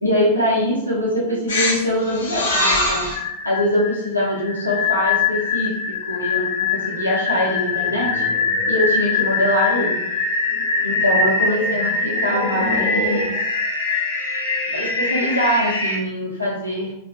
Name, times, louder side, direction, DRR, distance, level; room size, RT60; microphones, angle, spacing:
voice 1, 0.0-3.1 3.4-8.3 8.7-10.0 10.8-13.3 14.7-16.9, equal, 90° left, -6 dB, 1.1 m, -23 dB
sound 1, 1.5-16.0, left 3 dB, 65° left, 0.9 m, -23 dB
4.4 x 3.0 x 2.7 m, 0.84 s
figure-of-eight pair, 90°, 0 cm